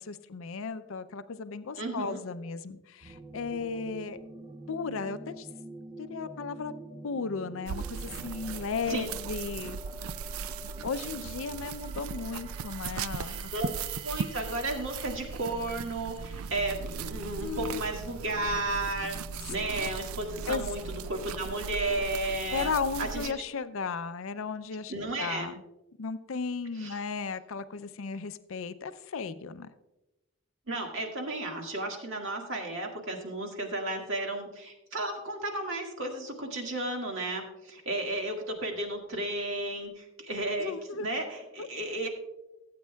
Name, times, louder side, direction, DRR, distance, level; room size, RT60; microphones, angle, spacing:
voice 1, 0.0-4.2 4.7-5.5 6.0-6.7 7.0-9.8 10.8-13.5 17.4-17.8 20.5-20.7 22.5-24.9 25.2-25.5 26.0-29.7 40.6-41.1 41.6-41.7, left 5 dB, 70° left, 12 dB, 0.5 m, -35 dB
voice 2, 1.8-2.2 8.9-9.1 13.3-13.7 14.0-19.2 19.5-23.3 24.9-25.5 26.8-27.0 30.7-40.7 41.0-42.1, right 2 dB, 60° right, 1 dB, 1.9 m, -33 dB
sound 1, 3.0-22.2, right 1 dB, 25° right, 0.5 m, -48 dB
sound 2, 7.7-23.3, right 6 dB, 80° right, 0.4 m, -38 dB
17.0 x 8.5 x 2.3 m, 0.97 s
head